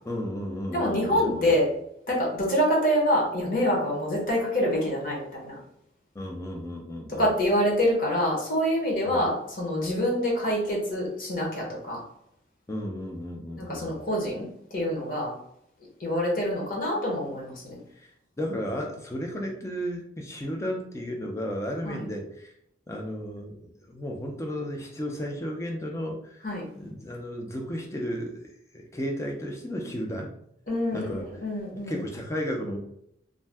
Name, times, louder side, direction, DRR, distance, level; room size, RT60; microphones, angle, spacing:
voice 1, 0.0-1.5 6.1-7.3 9.0-9.3 12.7-14.0 18.0-18.1 18.4-22.5 22.9-26.4 26.8-28.4 28.7-30.3 30.9-31.3 31.9-32.8, equal, 15° left, 1 dB, 0.4 m, -33 dB
voice 2, 0.7-1.7 2.1-5.6 7.1-12.0 13.6-14.4 14.7-15.3 16.0-17.8 21.8-22.0 26.4-26.6 30.7-32.0, equal, 50° left, -3 dB, 0.8 m, -26 dB
2.6 x 2.2 x 3.3 m, 0.75 s
head